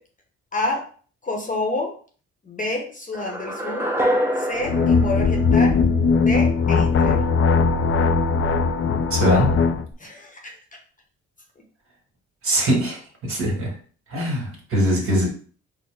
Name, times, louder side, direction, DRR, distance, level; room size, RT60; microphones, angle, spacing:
voice 1, 0.5-0.8 1.2-1.9 2.4-3.9 4.4-5.8 6.2-7.2 10.0-10.5, left 2 dB, 25° left, 1 dB, 0.9 m, -28 dB
sound 1, 3.1-6.2, equal, 10° right, 0.7 m, -26 dB
sound 2, 4.6-9.9, left 4 dB, 45° left, 0.4 m, -19 dB
voice 2, 9.1-9.6 12.4-13.8 14.1-15.3, equal, 45° right, -1 dB, 1.7 m, -22 dB
4.3 x 2.1 x 3.5 m, 0.43 s
cardioid pair, 90°, 30 cm